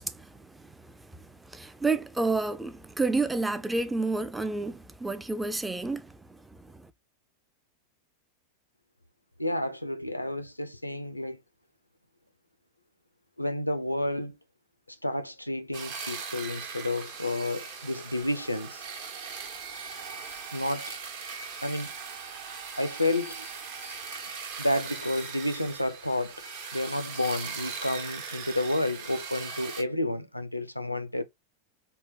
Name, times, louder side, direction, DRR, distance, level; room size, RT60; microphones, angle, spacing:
voice 1, 0.0-6.9, right 3 dB, 10° right, 0.4 m, -31 dB
voice 2, 9.4-11.4 13.4-14.4 15.0-18.8 20.5-20.9 21.6-21.9 22.8-23.5 24.6-26.4 26.7-31.2, left 1 dB, 85° left, 0.4 m, -30 dB
sound 1, 15.7-29.8, right 5 dB, 50° right, 0.9 m, -39 dB
3.9 x 2.1 x 3.8 m
figure-of-eight pair, 90°, 0 cm